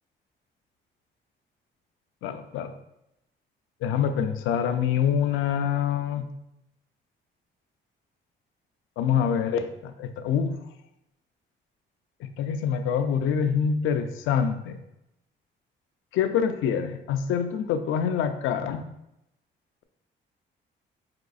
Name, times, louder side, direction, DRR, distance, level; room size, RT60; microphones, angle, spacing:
voice 1, 2.2-2.7 3.8-6.2 9.0-10.6 12.2-14.8 16.1-18.8, left 7 dB, 85° left, 8 dB, 0.5 m, -26 dB
4.8 x 3.7 x 2.3 m, 0.84 s
cardioid pair, 90°, 20 cm